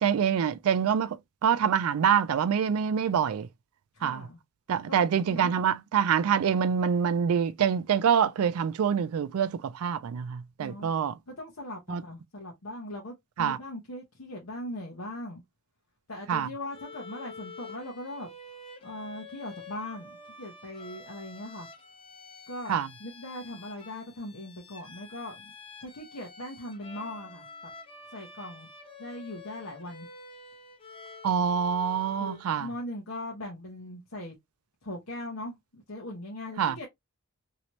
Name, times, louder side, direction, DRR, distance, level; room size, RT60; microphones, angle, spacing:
voice 1, 0.0-1.2 1.4-3.5 4.0-4.3 4.7-11.1 11.9-12.0 13.4-13.6 16.3-16.5 22.7-22.9 31.2-32.7 36.6-36.7, right 7 dB, 85° right, 0.4 m, -25 dB
voice 2, 3.9-4.4 4.9-5.6 10.6-10.9 11.3-15.4 16.1-18.3 18.8-21.7 22.5-25.5 25.8-27.5 28.1-28.7 29.0-30.1 32.2-34.3 34.8-36.9, left 1 dB, 80° left, 1.0 m, -40 dB
Bowed string instrument, 16.7-32.5, left 3 dB, 25° left, 0.7 m, -48 dB
3.0 x 2.8 x 2.9 m
head